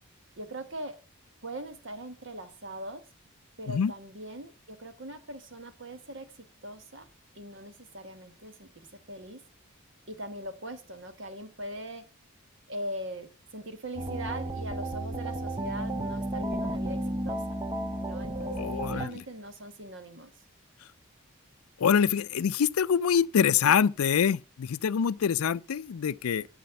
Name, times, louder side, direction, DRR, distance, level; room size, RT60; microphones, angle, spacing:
voice 1, 0.4-0.9 1.4-3.0 3.6-6.3 6.6-7.1 7.3-9.4 10.1-12.0 12.7-17.0 17.2-17.4 18.0-20.3, right 1 dB, 55° right, 1.4 m, -41 dB
sound 1, 14.0-19.1, right 1 dB, 20° right, 0.8 m, -33 dB
voice 2, 18.5-19.1 21.8-26.5, left 7 dB, 85° left, 0.4 m, -25 dB
12.0 x 4.3 x 6.9 m
head